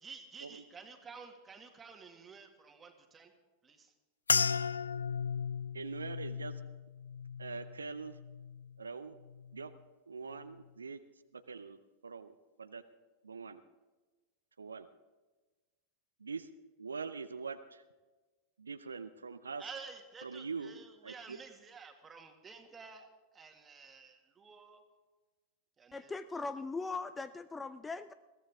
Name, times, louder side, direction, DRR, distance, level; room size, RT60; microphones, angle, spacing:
voice 1, 0.0-3.3 3.6-3.9 19.6-24.8 25.8-26.1, right 5 dB, 20° right, 5 dB, 2.0 m, -51 dB
sound 1, 4.3-8.8 9.2-9.8 10.4-10.6, left 5 dB, 75° left, 0.4 m, -36 dB
voice 2, 5.7-6.6 7.4-8.2 8.8-9.1 9.5-9.7 10.1-11.0 11.3-11.8 12.0-12.8 13.2-13.6 14.6-14.9 16.2-16.5 16.8-17.8 18.6-19.7 20.2-21.4, right 5 dB, 75° right, 11 dB, 0.6 m, -43 dB
voice 3, 25.9-28.1, left 3 dB, 15° left, 14 dB, 0.4 m, -39 dB
21.5 x 15.5 x 3.6 m, 1.2 s
figure-of-eight pair, 90°, 0 cm